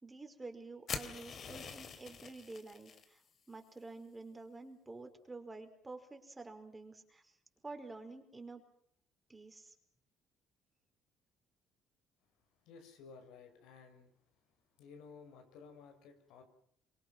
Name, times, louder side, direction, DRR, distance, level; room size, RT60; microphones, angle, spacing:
voice 1, 0.0-3.2 3.5-7.4 7.6-8.6 9.3-9.7, right 3 dB, 15° right, 5 dB, 4.9 m, -49 dB
sound 1, 0.9-3.1, left 6 dB, 45° left, 2.9 m, -44 dB
voice 2, 12.6-14.1 14.8-16.4, left 5 dB, 85° left, 6 dB, 6.4 m, -55 dB
26.5 x 24.5 x 6.1 m, 0.66 s
cardioid pair, 105°, 0 cm